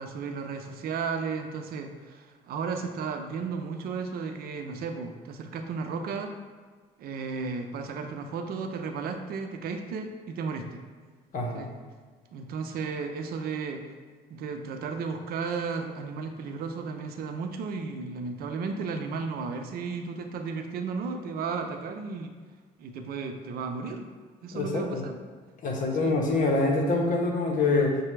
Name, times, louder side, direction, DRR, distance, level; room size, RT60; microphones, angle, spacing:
voice 1, 0.0-6.3 7.0-10.8 11.5-11.7 12.3-13.8 14.3-22.3 22.8-24.1 24.4-25.2 26.0-26.2, right 5 dB, 60° right, 5 dB, 0.5 m, -34 dB
voice 2, 11.3-11.7 24.5-25.0 25.6-28.0, left 3 dB, 50° left, 0 dB, 0.9 m, -25 dB
6.6 x 2.2 x 3.2 m, 1.5 s
cardioid pair, 110°, 17 cm